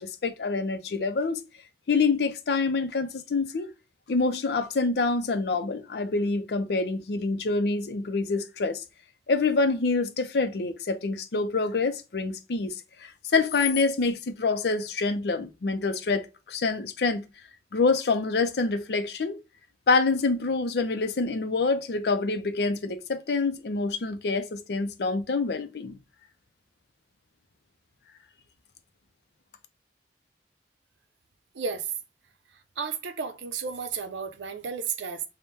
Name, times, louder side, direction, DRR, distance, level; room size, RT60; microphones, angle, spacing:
voice 1, 0.0-1.4 1.9-3.7 4.1-8.8 9.3-12.7 13.3-17.3 17.7-19.4 19.9-26.0, left 4 dB, 65° left, 0.5 m, -26 dB
voice 2, 31.5-31.9 32.8-35.2, right 6 dB, 90° right, 0.6 m, -33 dB
3.5 x 2.2 x 4.0 m
head